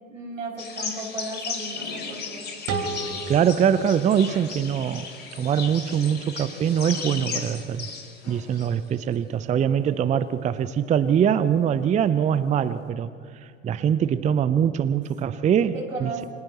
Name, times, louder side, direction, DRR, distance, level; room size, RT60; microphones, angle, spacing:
voice 1, 0.1-2.5 15.7-16.3, right 2 dB, 75° right, -2 dB, 6.7 m, -35 dB
sound 1, 0.6-8.9, left 5 dB, 25° left, 3.9 m, -36 dB
sound 2, 1.7-2.4 2.7-3.5 3.7-4.2 4.7-6.4 6.7-7.6 8.2-8.6, left 3 dB, 60° left, 6.1 m, -47 dB
sound 3, 2.7-5.5, right 4 dB, 40° right, 3.5 m, -34 dB
voice 2, 3.3-5.1 5.3-7.9 8.3-13.1 13.6-16.2, right 8 dB, 20° right, 14 dB, 0.6 m, -23 dB
30.0 x 28.5 x 3.0 m, 2.3 s
figure-of-eight pair, 85°, 38 cm